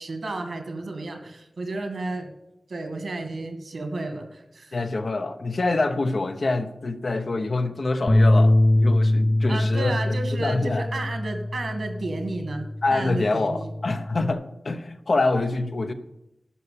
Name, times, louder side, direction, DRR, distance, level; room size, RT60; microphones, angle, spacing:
voice 1, 0.0-2.3 2.7-4.8 9.5-13.7, right 2 dB, 80° right, 5 dB, 2.0 m, -32 dB
voice 2, 4.7-10.8 12.8-15.9, left 3 dB, 65° left, 7 dB, 1.0 m, -26 dB
sound 1, 8.1-14.3, left 1 dB, 25° left, 0.8 m, -23 dB
11.5 x 5.9 x 8.5 m, 0.87 s
wide cardioid pair, 75°, 0 cm